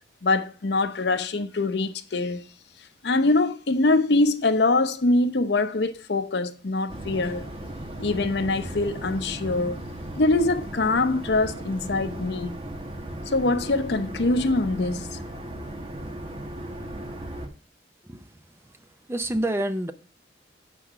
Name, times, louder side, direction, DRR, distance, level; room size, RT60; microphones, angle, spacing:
voice 1, 0.2-2.4 3.0-7.5 8.0-9.8 10.2-12.6 13.3-15.2, left 2 dB, 70° left, 0.8 m, -23 dB
sound 1, 6.9-17.5, right 1 dB, 30° right, 1.2 m, -36 dB
voice 2, 18.0-19.9, right 1 dB, 15° right, 0.6 m, -30 dB
8.4 x 4.7 x 5.9 m
head